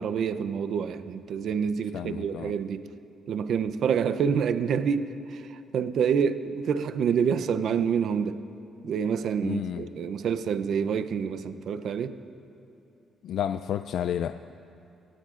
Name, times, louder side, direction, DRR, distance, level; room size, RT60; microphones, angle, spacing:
voice 1, 0.0-2.9 3.3-8.4 8.8-12.2, right 7 dB, 65° right, 10 dB, 0.5 m, -27 dB
voice 2, 1.9-2.5 9.4-9.8 13.2-14.4, left 10 dB, 75° left, 10 dB, 0.3 m, -31 dB
24.5 x 18.0 x 2.5 m, 2.6 s
cardioid pair, 90°, 0 cm